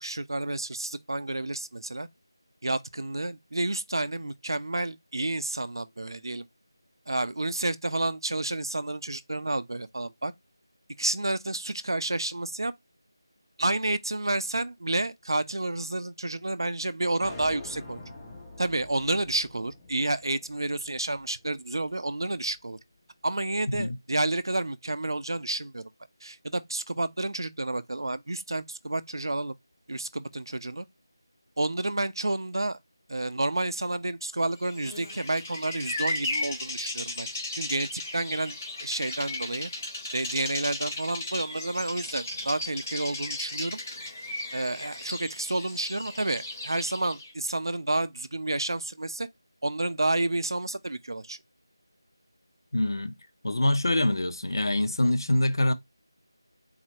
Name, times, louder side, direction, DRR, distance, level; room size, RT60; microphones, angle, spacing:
voice 1, 0.0-2.1 2.6-6.5 7.1-10.3 11.0-12.7 13.6-18.0 18.6-22.8 23.2-25.8 26.2-29.6 29.9-30.9 31.6-32.8 33.1-37.3 37.6-39.7 40.1-43.8 44.5-49.3 49.6-51.4, right 2 dB, 65° right, 0.4 m, -30 dB
sound 1, 17.2-21.6, left 2 dB, 10° left, 0.7 m, -45 dB
Bird vocalization bird call bird song, 34.6-47.3, left 2 dB, 35° left, 1.5 m, -36 dB
voice 2, 52.7-53.2 53.4-55.7, left 1 dB, 65° left, 0.7 m, -25 dB
3.9 x 2.8 x 3.0 m
figure-of-eight pair, 165°, 2 cm